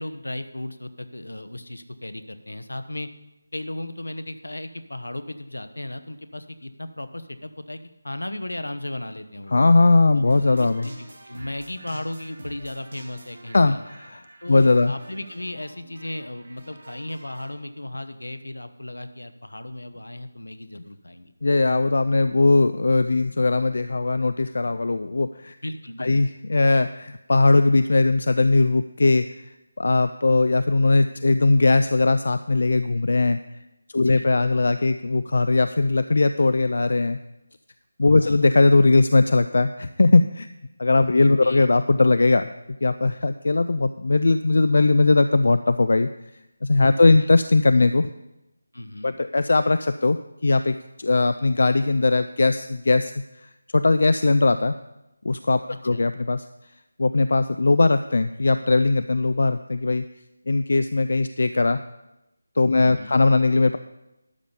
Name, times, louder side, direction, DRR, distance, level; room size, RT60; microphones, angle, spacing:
voice 1, 0.0-3.1 3.5-9.6 10.1-13.8 14.4-21.3 25.6-26.2 34.0-34.3 38.2-38.4 41.1-41.7 48.7-49.1 55.7-56.0 62.8-63.2, left 1 dB, 75° left, 10 dB, 1.0 m, -36 dB
voice 2, 9.5-10.9 13.5-14.2 14.5-14.9 21.4-25.6 26.0-29.3 29.8-33.4 33.9-37.2 38.0-40.5 40.8-42.5 42.8-46.1 46.6-48.1 49.0-53.1 53.7-54.8 55.2-56.4 57.0-60.0 60.5-61.8 62.6-63.8, left 3 dB, 55° left, 11 dB, 0.4 m, -19 dB
sound 1, 10.3-17.5, right 1 dB, 55° right, 2.0 m, -45 dB
12.0 x 5.2 x 7.0 m, 0.93 s
figure-of-eight pair, 160°, 0 cm